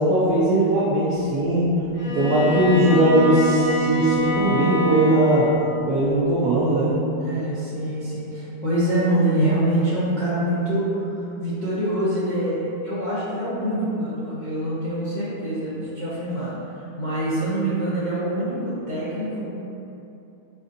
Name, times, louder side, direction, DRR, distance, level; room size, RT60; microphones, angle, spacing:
voice 1, 0.0-1.7 2.1-5.5 5.9-7.0, right 1 dB, 75° right, -8 dB, 0.8 m, -19 dB
Bowed string instrument, 1.9-5.7, equal, 45° left, 1.8 m, -25 dB
voice 2, 7.2-11.0 11.4-16.5 16.7-19.5, right 1 dB, 60° left, -12 dB, 0.4 m, -25 dB
4.4 x 2.6 x 2.5 m, 2.8 s
omnidirectional pair, 1.9 m